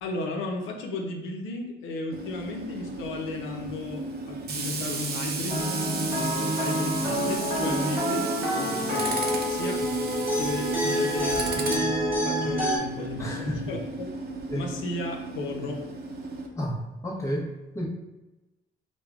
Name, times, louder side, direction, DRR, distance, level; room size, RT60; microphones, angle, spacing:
voice 1, 0.0-5.7 6.4-9.1 9.5-9.8 10.3-14.1 14.5-15.8, left 2 dB, 85° left, 1 dB, 0.6 m, -35 dB
Tools, 2.1-16.5, right 3 dB, 50° right, 0.6 m, -34 dB
sound 1, 5.5-12.8, equal, 10° right, 1.3 m, -27 dB
voice 2, 13.2-13.7 14.5-14.7 16.6-17.8, equal, 15° left, -2 dB, 0.8 m, -32 dB
4.6 x 2.2 x 2.4 m, 1.1 s
cardioid pair, 90°, 20 cm